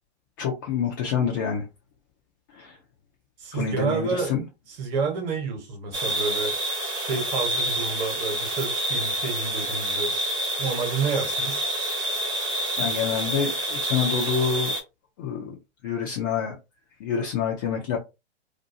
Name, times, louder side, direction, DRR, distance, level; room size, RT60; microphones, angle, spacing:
voice 1, 0.4-1.6 2.5-2.8 3.5-4.4 12.8-14.7 15.2-15.5 15.8-16.5 17.0-18.0, left 7 dB, 20° left, 0.3 m, -27 dB
voice 2, 3.4-4.3 4.8-6.5 6.9-10.1 10.6-11.7, right 5 dB, 40° right, 1.1 m, -29 dB
sound 1, 5.9-14.8, right 1 dB, 15° right, 0.7 m, -28 dB
2.6 x 2.2 x 2.6 m
hypercardioid pair, 125°, 34 cm